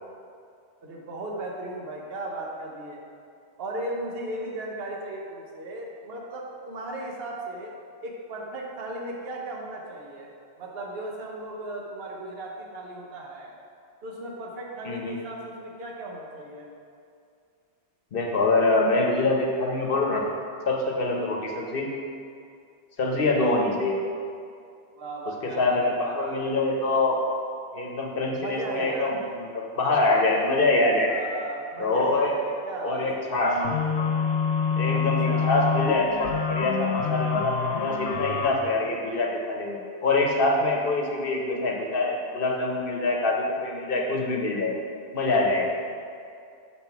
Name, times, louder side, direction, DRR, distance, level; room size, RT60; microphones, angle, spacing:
voice 1, 0.8-3.0 3.6-7.7 8.0-10.3 10.6-13.5 14.0-16.7 24.9-26.6 28.4-29.1 31.1-33.1 34.9-35.7, right 2 dB, 60° right, -1 dB, 1.1 m, -36 dB
voice 2, 14.8-15.2 18.1-20.2 20.7-21.9 23.0-24.0 25.4-27.2 27.7-31.1 31.8-32.3 32.8-33.5 34.8-44.7 45.1-45.7, left 2 dB, 55° left, 0 dB, 1.0 m, -25 dB
sound 1, 33.4-38.5, left 6 dB, 80° left, 1.0 m, -26 dB
6.2 x 5.7 x 4.6 m, 2.4 s
omnidirectional pair, 1.2 m